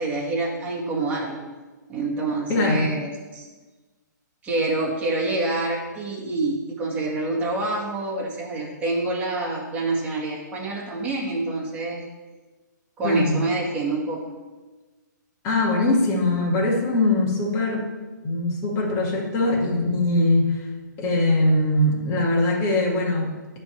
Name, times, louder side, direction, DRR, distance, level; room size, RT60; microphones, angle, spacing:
voice 1, 0.0-1.4 1.9-3.5 4.4-12.0 13.0-14.3, right 2 dB, 15° right, -5 dB, 1.9 m, -27 dB
voice 2, 2.5-2.9 13.0-13.4 15.4-17.9 18.2-20.7 21.0-23.6, left 2 dB, 25° left, -1 dB, 1.9 m, -22 dB
10.5 x 3.7 x 7.3 m, 1.3 s
hypercardioid pair, 150°, 10 cm